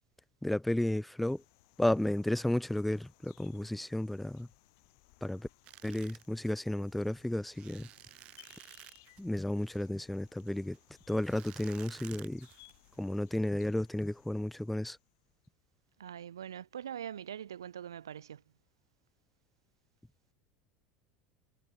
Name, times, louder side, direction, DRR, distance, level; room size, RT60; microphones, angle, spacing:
voice 1, 0.4-1.4 1.8-4.5 5.2-5.5 5.8-7.9 9.2-10.8 11.1-12.5 13.0-15.0, left 1 dB, 5° left, 0.4 m, -32 dB
sound 1, 1.3-15.5, left 27 dB, 65° left, 4.8 m, -64 dB
sound 2, 5.6-13.2, right 16 dB, 50° right, 4.2 m, -55 dB
voice 2, 16.0-18.4, right 9 dB, 85° right, 1.1 m, -43 dB
hypercardioid pair, 85°, 2 cm